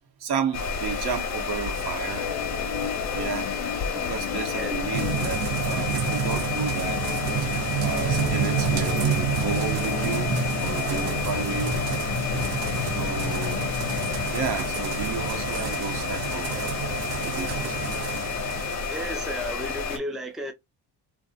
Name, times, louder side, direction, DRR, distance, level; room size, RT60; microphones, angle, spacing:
voice 1, 0.2-2.3 3.1-3.5 3.9-7.0 7.8-10.3 10.6-11.8 12.8-13.7 14.3-17.7, right 6 dB, 60° right, 0.9 m, -32 dB
sound 1, 0.5-20.0, left 5 dB, 40° left, 0.9 m, -30 dB
Organ, 2.1-14.3, left 9 dB, 75° left, 0.5 m, -35 dB
sound 2, 4.9-19.0, right 7 dB, 90° right, 0.7 m, -29 dB
voice 2, 18.9-20.5, equal, ahead, 0.5 m, -33 dB
2.5 x 2.2 x 2.4 m
supercardioid pair, 85°, 43 cm